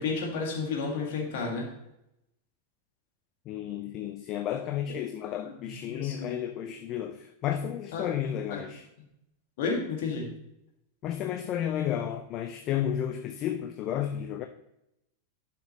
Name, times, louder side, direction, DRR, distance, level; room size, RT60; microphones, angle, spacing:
voice 1, 0.0-1.7 5.8-6.4 7.9-8.1 8.5-8.6 9.6-10.3, left 4 dB, 50° left, 2.1 m, -31 dB
voice 2, 3.5-8.9 11.0-14.4, left 10 dB, 35° left, 0.5 m, -32 dB
11.5 x 5.8 x 3.0 m
figure-of-eight pair, 90°, 0 cm